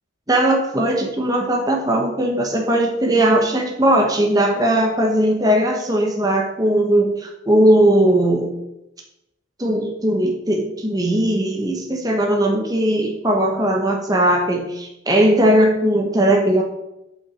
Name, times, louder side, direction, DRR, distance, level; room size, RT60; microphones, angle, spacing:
voice 1, 0.3-8.5 9.6-16.6, right 1 dB, 20° right, 0 dB, 1.2 m, -18 dB
10.5 x 5.7 x 5.1 m, 0.88 s
head